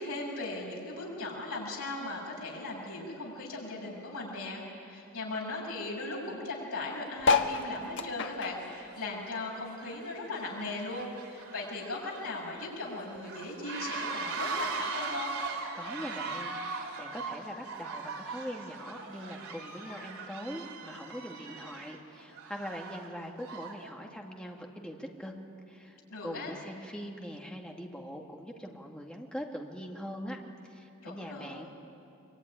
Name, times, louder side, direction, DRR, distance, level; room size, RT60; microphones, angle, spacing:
voice 1, 0.0-15.3 26.1-26.5 31.0-31.6, left 2 dB, 80° left, -2 dB, 6.9 m, -38 dB
sound 1, 6.5-6.6 7.3-7.6 7.9-23.9, right 4 dB, 80° right, 3.5 m, -40 dB
sound 2, 7.2-10.0 10.3-11.8 12.3-12.4 12.6-12.7 12.9-13.3 14.0-14.1, left 4 dB, 55° left, 1.4 m, -31 dB
voice 2, 15.7-25.3 25.7-30.4 30.6-31.7, equal, 5° left, 0 dB, 2.2 m, -42 dB
24.5 x 23.5 x 10.0 m, 2.6 s
head